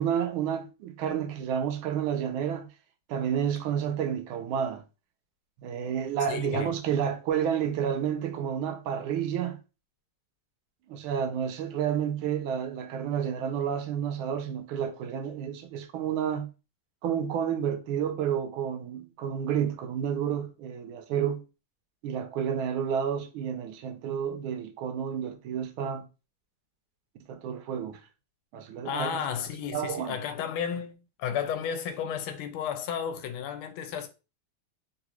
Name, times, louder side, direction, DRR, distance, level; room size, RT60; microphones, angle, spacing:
voice 1, 0.0-2.7 3.1-4.8 5.6-9.6 10.9-16.5 17.0-21.4 22.0-26.1 27.3-28.0 28.5-29.2 29.7-30.2, right 8 dB, 80° right, 1.3 m, -30 dB
voice 2, 6.3-6.7 28.8-34.1, left 8 dB, 80° left, 1.4 m, -33 dB
3.8 x 2.4 x 2.9 m
omnidirectional pair, 2.3 m